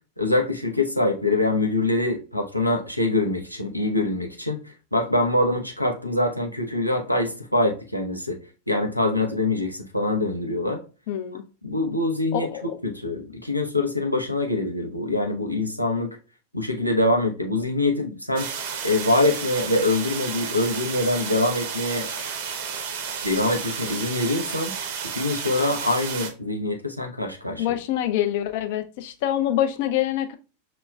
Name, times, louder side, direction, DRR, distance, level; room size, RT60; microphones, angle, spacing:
voice 1, 0.2-4.6 4.9-8.4 8.7-10.8 11.6-16.1 16.5-18.5 18.8-22.1 23.2-24.7 25.1-27.7, left 2 dB, 90° left, 0.7 m, -24 dB
voice 2, 11.1-11.4 12.3-12.8 27.6-30.3, left 11 dB, 50° left, 0.5 m, -25 dB
sound 1, 18.4-26.3, right 6 dB, 50° right, 0.6 m, -32 dB
5.8 x 3.0 x 2.3 m
figure-of-eight pair, 90°, 0 cm